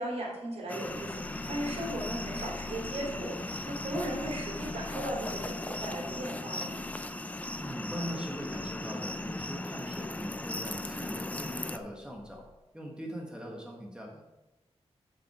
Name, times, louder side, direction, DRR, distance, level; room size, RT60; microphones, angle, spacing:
voice 1, 0.0-6.8, right 1 dB, 75° right, -2 dB, 3.5 m, -37 dB
sound 1, 0.7-11.8, left 2 dB, 15° left, 0.4 m, -37 dB
sound 2, 0.8-12.6, left 5 dB, 70° left, 0.7 m, -49 dB
voice 2, 7.6-12.5 12.7-14.3, equal, 10° right, -1 dB, 1.3 m, -41 dB
7.8 x 7.1 x 4.8 m, 1.1 s
wide cardioid pair, 145°, 11 cm